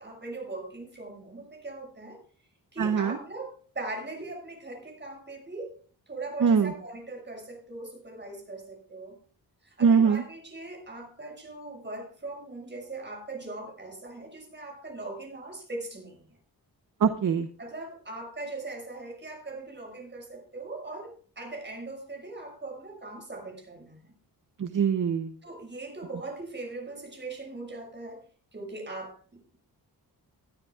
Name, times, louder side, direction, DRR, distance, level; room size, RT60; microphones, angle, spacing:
voice 1, 0.0-2.2 2.7-5.7 6.1-9.2 9.6-16.3 17.6-24.1 25.4-28.2 28.5-29.6, right 2 dB, 30° right, 2 dB, 6.5 m, -40 dB
voice 2, 2.8-3.2 6.4-6.7 9.8-10.2 17.0-17.5 24.6-25.3, right 6 dB, 55° right, 8 dB, 1.0 m, -22 dB
20.0 x 12.5 x 2.4 m, 0.42 s
wide cardioid pair, 130°, 38 cm